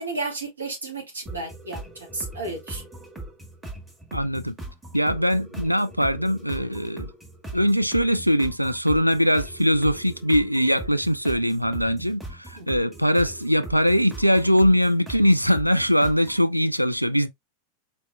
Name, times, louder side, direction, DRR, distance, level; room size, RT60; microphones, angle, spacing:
voice 1, 0.0-2.8 12.6-12.7, right 2 dB, 70° right, 1.6 m, -33 dB
sound 1, 1.3-16.4, right 2 dB, 10° right, 1.7 m, -40 dB
voice 2, 4.1-4.5 4.9-7.1 7.5-17.3, equal, 90° right, 0.3 m, -21 dB
4.0 x 3.4 x 2.4 m
figure-of-eight pair, 90°, 0 cm